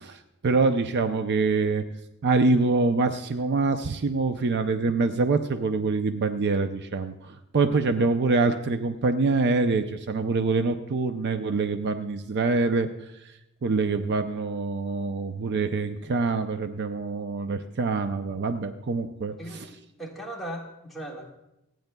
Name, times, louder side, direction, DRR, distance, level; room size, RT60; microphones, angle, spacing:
voice 1, 0.0-1.8 2.2-12.9 13.6-19.7, right 3 dB, 50° right, 8 dB, 0.5 m, -25 dB
voice 2, 19.4-21.4, right 1 dB, ahead, -1 dB, 1.8 m, -38 dB
26.5 x 9.2 x 2.2 m, 0.89 s
head